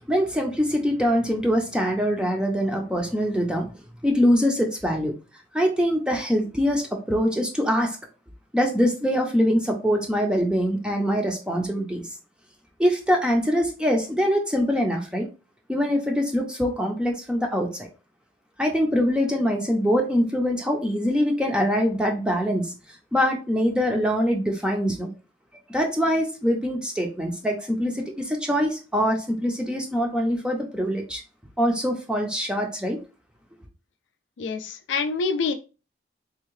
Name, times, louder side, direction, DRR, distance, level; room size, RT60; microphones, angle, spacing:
voice 1, 0.0-3.7 4.0-5.1 5.5-8.0 8.5-12.0 12.8-15.3 15.7-17.9 18.6-22.7 23.1-25.1 25.7-31.2 31.6-33.0, equal, 5° right, 2 dB, 0.5 m, -23 dB
voice 2, 34.4-35.5, left 4 dB, 85° left, 8 dB, 0.4 m, -26 dB
3.6 x 2.7 x 3.1 m, 0.33 s
head